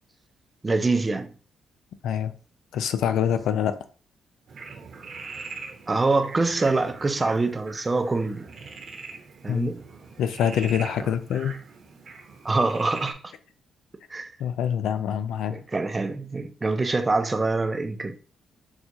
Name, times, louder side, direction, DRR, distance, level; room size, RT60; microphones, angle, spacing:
voice 1, 0.6-1.3 5.9-8.5 9.4-9.8 12.4-13.2 14.1-14.3 15.5-18.2, right 3 dB, 20° right, 0.4 m, -25 dB
voice 2, 2.0-2.3 2.7-3.8 9.5-9.7 10.2-11.6 14.4-15.6, left 9 dB, 90° left, 0.4 m, -25 dB
Frog, 4.5-13.1, right 4 dB, 55° right, 0.9 m, -42 dB
5.9 x 2.4 x 2.6 m
cardioid pair, 130°, 0 cm